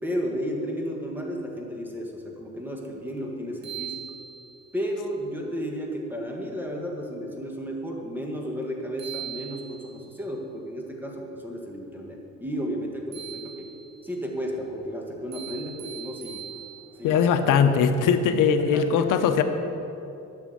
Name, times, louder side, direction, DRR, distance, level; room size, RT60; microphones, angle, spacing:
voice 1, 0.0-3.9 4.7-13.7 14.0-16.4 17.0-17.5 18.6-19.4, equal, 5° right, 0 dB, 1.7 m, -33 dB
sound 1, 3.2-3.3 3.6-4.7 8.6-8.7 9.0-10.1 13.1-14.0 15.3-17.1, right 11 dB, 55° right, 2.4 m, -40 dB
voice 2, 17.0-19.4, left 7 dB, 80° left, 8 dB, 0.8 m, -20 dB
12.0 x 6.2 x 7.8 m, 2.8 s
cardioid pair, 140°, 31 cm